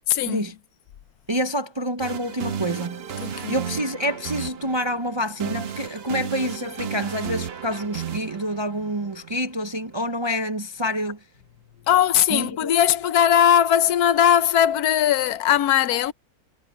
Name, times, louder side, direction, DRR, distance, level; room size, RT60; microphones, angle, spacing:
voice 1, 0.1-0.4 3.2-3.5 11.9-16.1, left 10 dB, 85° left, 1.2 m, -19 dB
voice 2, 1.3-11.2 12.3-12.7, equal, 35° right, 0.4 m, -27 dB
sound 1, 2.0-9.9, right 7 dB, 50° right, 0.9 m, -34 dB
omnidirectional pair, 1.6 m